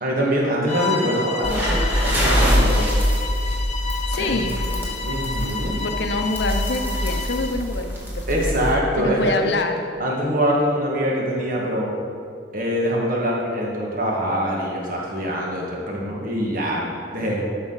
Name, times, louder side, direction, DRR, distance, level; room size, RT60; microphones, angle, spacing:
voice 1, 0.0-2.9 4.1-4.3 5.0-5.8 8.3-9.3 10.0-11.9 12.5-17.4, equal, 50° right, -3 dB, 1.8 m, -24 dB
Bowed string instrument, 0.7-7.6, left 5 dB, 35° left, 0.8 m, -31 dB
sound 1, 1.4-8.7, equal, 10° right, 1.8 m, -23 dB
voice 2, 4.1-4.6 5.8-8.5 9.0-9.8, left 2 dB, 70° left, 6 dB, 0.8 m, -26 dB
12.0 x 5.8 x 4.1 m, 2.2 s
head